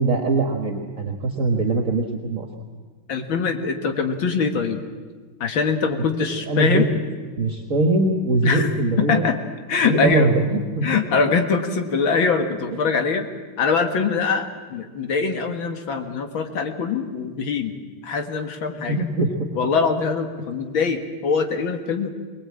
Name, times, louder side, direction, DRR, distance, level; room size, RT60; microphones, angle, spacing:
voice 1, 0.0-2.5 6.2-6.9 7.4-9.2 9.8-10.9 12.7-12.8 18.9-19.5, right 2 dB, 45° right, 4 dB, 1.8 m, -22 dB
voice 2, 3.1-4.8 5.4-6.9 8.4-8.7 9.0-9.4 9.7-10.3 10.8-13.3 13.6-17.8 18.0-19.0 19.6-22.1, left 5 dB, 75° left, 6 dB, 2.5 m, -23 dB
23.5 x 19.5 x 8.7 m, 1.5 s
omnidirectional pair, 2.2 m